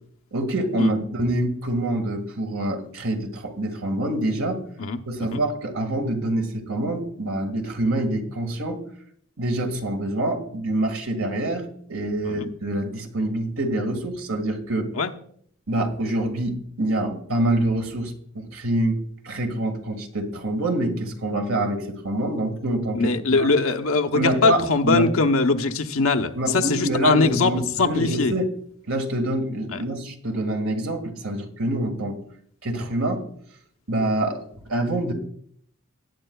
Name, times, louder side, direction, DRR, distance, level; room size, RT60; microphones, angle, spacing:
voice 1, 0.3-4.6 5.1-8.8 9.4-14.9 15.7-23.5 24.1-25.1 26.3-28.5 28.9-32.2 32.6-33.3 33.9-35.1, right 1 dB, 85° right, 4 dB, 1.8 m, -26 dB
voice 2, 4.8-5.4 12.2-12.5 14.9-15.1 22.9-27.5 27.8-28.3 29.7-29.8, left 3 dB, 80° left, 6 dB, 0.8 m, -22 dB
19.0 x 9.9 x 2.3 m, 0.65 s
head